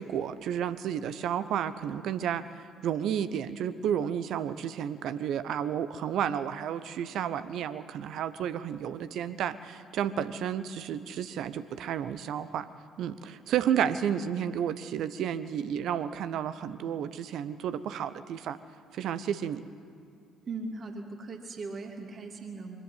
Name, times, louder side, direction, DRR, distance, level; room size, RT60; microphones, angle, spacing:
voice 1, 0.0-12.7 13.0-18.6 18.9-19.6, right 9 dB, 60° right, 13 dB, 0.9 m, -32 dB
voice 2, 20.5-22.8, right 3 dB, 45° right, 2 dB, 2.7 m, -39 dB
23.5 x 14.0 x 9.4 m, 2.4 s
figure-of-eight pair, 50°, 0 cm